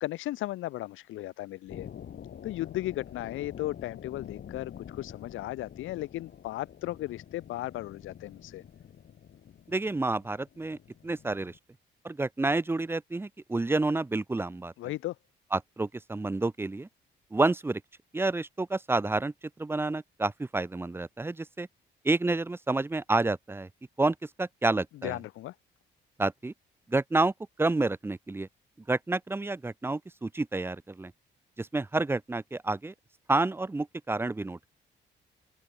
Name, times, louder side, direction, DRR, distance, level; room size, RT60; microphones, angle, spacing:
voice 1, 0.0-1.9 2.4-8.6 14.8-15.2 25.0-25.5, left 16 dB, 85° left, 1.0 m, -35 dB
sound 1, 1.7-11.6, left 9 dB, 60° left, 5.6 m, -47 dB
voice 2, 9.7-10.8 11.0-11.5 12.0-14.7 15.5-16.9 17.3-17.8 18.1-19.3 19.6-21.7 22.0-23.7 24.0-25.2 26.2-26.5 26.9-27.3 27.6-28.5 28.9-31.1 31.6-32.9 33.3-34.7, right 2 dB, 10° right, 0.5 m, -29 dB
open air
cardioid pair, 90°, 20 cm